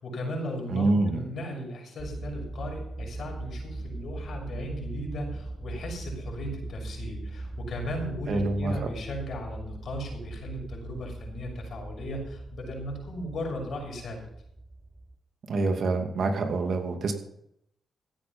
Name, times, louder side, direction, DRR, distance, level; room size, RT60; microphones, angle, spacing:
voice 1, 0.0-14.2, equal, 70° left, 1 dB, 6.4 m, -36 dB
voice 2, 0.7-1.2 8.3-8.7 15.5-17.1, right 3 dB, 65° right, 4 dB, 2.6 m, -26 dB
sound 1, 2.0-15.1, right 2 dB, 25° right, 2.8 m, -40 dB
16.0 x 8.7 x 5.6 m, 0.75 s
cardioid pair, 65°, 0 cm